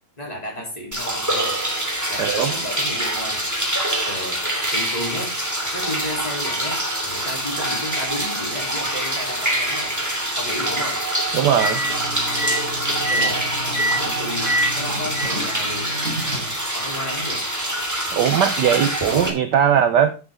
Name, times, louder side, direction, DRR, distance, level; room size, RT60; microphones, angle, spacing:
voice 1, 0.2-1.6 2.1-3.4 4.0-5.4 5.7-10.0 10.4-11.0 13.1-16.0 16.7-17.5, left 1 dB, 15° left, 3.5 m, -33 dB
sound 1, 0.9-19.3, right 1 dB, 10° right, 2.6 m, -25 dB
voice 2, 2.2-2.5 11.3-11.8 18.1-20.2, right 9 dB, 65° right, 1.2 m, -19 dB
sound 2, 11.4-16.6, right 1 dB, 35° right, 4.7 m, -27 dB
11.0 x 8.4 x 3.7 m
omnidirectional pair, 2.3 m